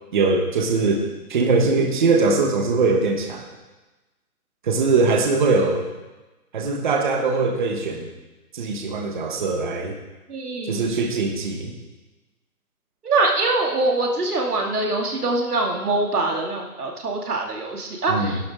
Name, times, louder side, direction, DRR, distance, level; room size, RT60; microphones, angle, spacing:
voice 1, 0.1-1.0 1.3-3.5 4.6-5.9 6.5-8.1 8.5-9.9 10.7-11.7 18.1-18.3, right 3 dB, 30° right, 2 dB, 1.2 m, -21 dB
voice 2, 10.3-10.9 13.0-18.5, right 2 dB, 80° right, 1 dB, 2.6 m, -23 dB
14.5 x 11.5 x 3.7 m, 1.1 s
hypercardioid pair, 165°, 45 cm